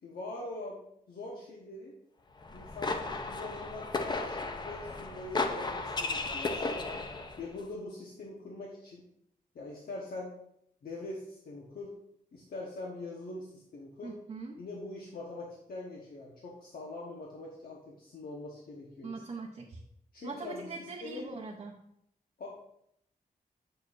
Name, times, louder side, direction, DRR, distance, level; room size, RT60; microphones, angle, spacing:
voice 1, 0.0-1.9 2.5-6.9 7.4-9.0 9.5-10.3 10.8-11.9 12.3-14.1 14.6-19.1 20.1-21.3 22.4-22.5, left 2 dB, 75° left, -3 dB, 1.1 m, -43 dB
sound 1, 2.4-7.5, left 3 dB, 30° left, 0.5 m, -35 dB
voice 2, 14.0-14.6 19.0-19.8 20.2-21.7, right 3 dB, 40° right, -3 dB, 0.7 m, -41 dB
7.7 x 6.6 x 2.5 m, 0.74 s
wide cardioid pair, 170°, 16 cm